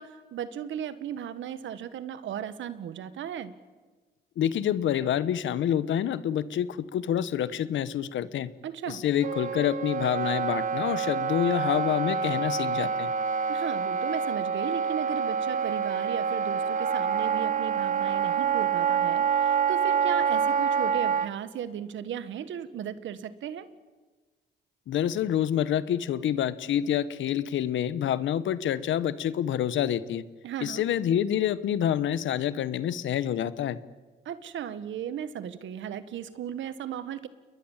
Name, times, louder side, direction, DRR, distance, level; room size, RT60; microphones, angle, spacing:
voice 1, 0.0-3.5 8.6-9.0 13.5-23.7 30.4-30.8 34.2-37.3, right 9 dB, 70° right, 13 dB, 1.7 m, -36 dB
voice 2, 4.4-8.5 8.9-13.1 24.9-30.2 30.6-33.8, left 10 dB, 75° left, 16 dB, 1.2 m, -27 dB
Wind instrument woodwind instrument, 9.2-21.3, right 7 dB, 40° right, 0.9 m, -27 dB
29.0 x 22.0 x 7.4 m, 1.3 s
cardioid pair, 90°, 20 cm